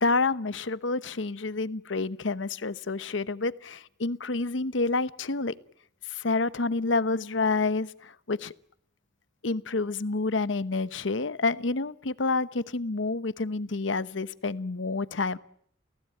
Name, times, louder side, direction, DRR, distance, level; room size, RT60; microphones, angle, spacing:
voice 1, 0.0-5.5 6.1-8.5 9.4-15.4, left 3 dB, 80° left, 16 dB, 0.9 m, -28 dB
29.5 x 16.5 x 9.0 m, 0.67 s
head